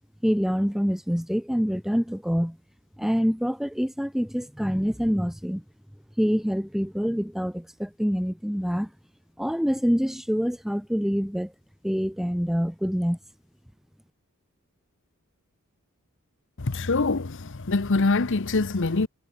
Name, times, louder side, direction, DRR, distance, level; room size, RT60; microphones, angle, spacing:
voice 1, 0.2-2.6 3.0-5.6 6.2-8.9 9.4-11.5 11.8-13.2, equal, ahead, 1.3 m, -26 dB
voice 2, 16.6-19.1, left 3 dB, 55° left, 0.9 m, -24 dB
head